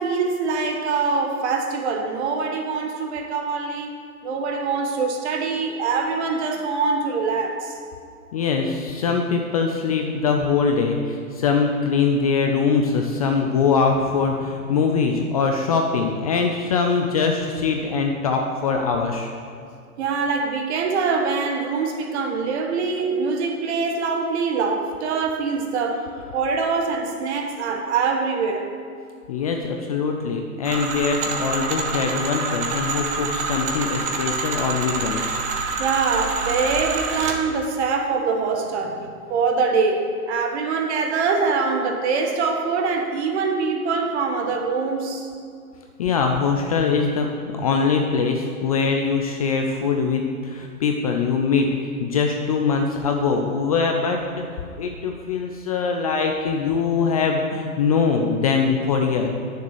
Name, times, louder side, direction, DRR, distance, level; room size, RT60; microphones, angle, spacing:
voice 1, 0.0-3.9 4.2-7.8 20.0-28.7 35.8-45.3, right 4 dB, 45° right, 1.5 m, -24 dB
voice 2, 8.3-19.3 29.3-35.3 46.0-51.7 52.0-59.3, left 5 dB, 25° left, 0.4 m, -22 dB
sound 1, 30.6-37.4, right 4 dB, 15° right, 0.6 m, -27 dB
9.3 x 6.8 x 6.5 m
hypercardioid pair, 135°, 44 cm